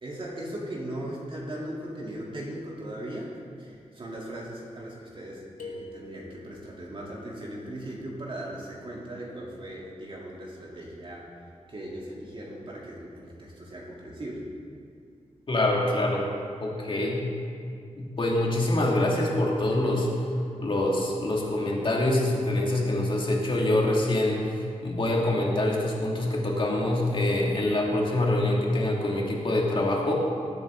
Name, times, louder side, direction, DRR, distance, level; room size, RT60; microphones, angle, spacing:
voice 1, 0.0-11.3 11.7-14.5, right 1 dB, 45° right, -4 dB, 3.3 m, -38 dB
sound 1, 5.6-6.7, left 2 dB, 85° left, 1.6 m, -43 dB
voice 2, 15.5-16.3 16.6-17.2 18.0-20.1 20.6-30.1, left 1 dB, 45° left, -2 dB, 2.5 m, -25 dB
20.0 x 8.5 x 3.9 m, 2.4 s
wide cardioid pair, 95°, 12 cm